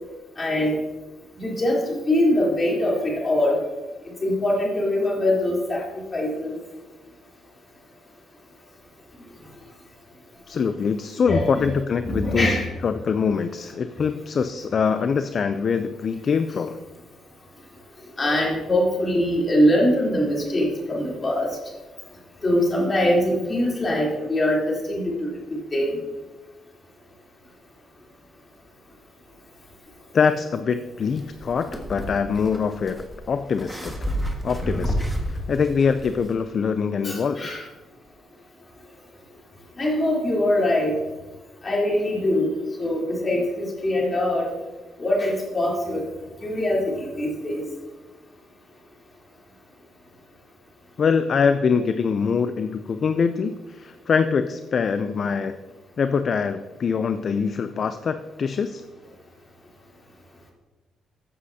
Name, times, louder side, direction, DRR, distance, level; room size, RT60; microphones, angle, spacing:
voice 1, 0.4-0.8 1.4-3.6 4.2-5.8 6.1-6.5 11.3-11.7 12.0-12.7 18.2-21.6 22.4-25.1 25.7-26.0 37.0-37.6 39.8-40.9 41.6-44.5 45.0-46.1 46.4-47.6, left 1 dB, 30° left, -3 dB, 3.6 m, -23 dB
voice 2, 10.5-16.8 30.1-34.1 34.4-34.9 35.2-37.5 51.0-55.5 56.0-58.8, left 6 dB, 50° left, 10 dB, 0.4 m, -24 dB
sound 1, 31.2-36.4, equal, ahead, 1.7 m, -30 dB
14.5 x 7.5 x 2.8 m, 1.2 s
cardioid pair, 90°, 0 cm